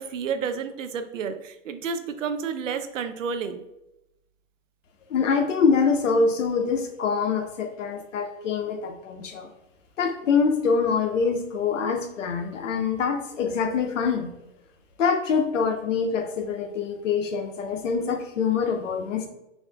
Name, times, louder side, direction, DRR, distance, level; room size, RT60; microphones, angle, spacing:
voice 1, 0.0-3.6, right 6 dB, 80° right, 9 dB, 0.6 m, -30 dB
voice 2, 5.1-9.5 10.0-14.3 15.0-19.3, left 5 dB, 75° left, 5 dB, 0.9 m, -25 dB
5.8 x 2.7 x 2.3 m, 0.88 s
hypercardioid pair, 125°, 38 cm